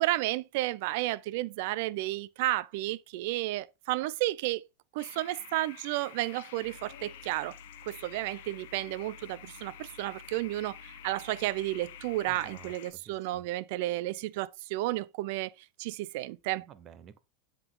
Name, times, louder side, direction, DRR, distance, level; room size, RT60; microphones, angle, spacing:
voice 1, 0.0-4.7 4.9-7.6 7.9-15.5 15.8-16.6, right 17 dB, 60° right, 0.4 m, -32 dB
sound 1, 5.0-12.9, left 11 dB, 70° left, 0.7 m, -50 dB
sound 2, 6.6-12.7, left 2 dB, 25° left, 2.1 m, -54 dB
voice 2, 12.3-13.5 16.5-17.2, right 8 dB, 30° right, 0.9 m, -52 dB
7.8 x 3.8 x 3.8 m
supercardioid pair, 145°, 0 cm